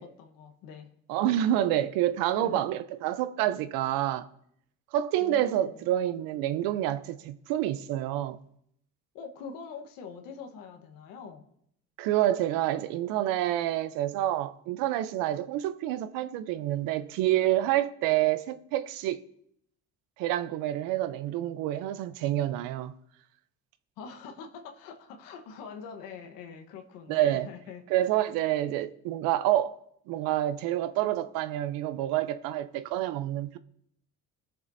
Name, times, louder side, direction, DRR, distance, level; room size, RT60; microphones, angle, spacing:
voice 1, 0.0-1.0 2.4-2.7 5.2-5.9 9.1-11.5 24.0-27.8, left 6 dB, 85° left, 1.2 m, -44 dB
voice 2, 1.1-4.3 4.9-8.4 12.0-19.2 20.2-22.9 27.1-27.5 27.9-29.8 30.1-33.6, right 13 dB, 85° right, 0.6 m, -28 dB
18.0 x 6.8 x 2.6 m
supercardioid pair, 70°, 33 cm